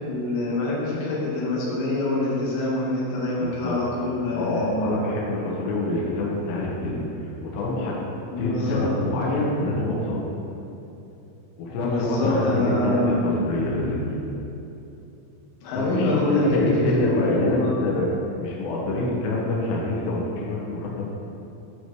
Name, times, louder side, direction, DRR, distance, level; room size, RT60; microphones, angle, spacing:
voice 1, 0.1-4.9 8.3-8.9 11.8-13.3 15.6-17.0 17.3-17.7, left 2 dB, 85° left, -5 dB, 4.1 m, -25 dB
voice 2, 3.3-3.8 4.4-8.0 8.4-10.3 11.6-14.1 15.7-18.1 18.4-21.1, left 2 dB, 70° left, -4 dB, 2.9 m, -26 dB
11.0 x 6.4 x 3.1 m, 2.8 s
omnidirectional pair, 5.8 m